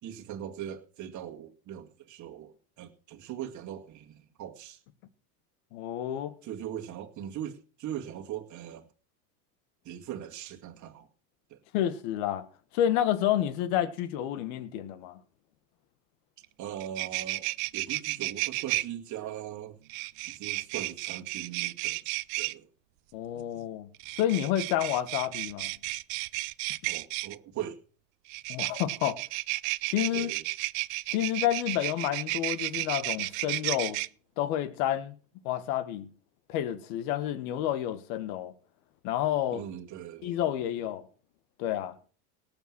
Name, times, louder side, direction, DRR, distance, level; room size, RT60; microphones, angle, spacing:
voice 1, 0.0-4.8 6.4-8.9 9.8-11.1 11.5-11.6 16.6-19.8 20.3-22.7 23.3-23.5 26.9-27.8 30.1-30.4 39.5-40.4, right 10 dB, 40° right, 2.0 m, -40 dB
voice 2, 5.7-6.3 11.7-12.4 12.7-15.2 23.1-23.9 24.1-25.7 28.5-29.2 29.9-30.3 31.1-34.0 34.4-35.1 35.4-36.1 36.5-38.5 39.0-39.6 40.2-41.0 41.6-41.9, left 11 dB, 65° left, 1.7 m, -29 dB
sound 1, 16.4-16.5 16.8-18.8 19.9-22.5 23.9-27.3 28.3-34.1, right 24 dB, 60° right, 0.6 m, -33 dB
18.0 x 7.0 x 6.2 m
supercardioid pair, 120°, 47 cm